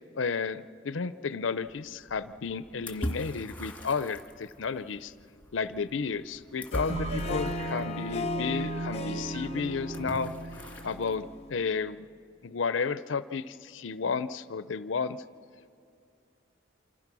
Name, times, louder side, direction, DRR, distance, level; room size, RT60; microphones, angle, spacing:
voice 1, 0.2-5.1 5.5-10.3 10.8-12.1 12.4-15.2, left 5 dB, 85° left, 15 dB, 0.6 m, -32 dB
sound 1, 1.6-11.2, equal, 10° left, 2.3 m, -42 dB
Harp, 6.5-11.7, left 3 dB, 35° left, 0.8 m, -38 dB
sound 2, 6.9-11.6, right 3 dB, 40° right, 0.7 m, -37 dB
28.0 x 25.5 x 6.1 m, 2.4 s
head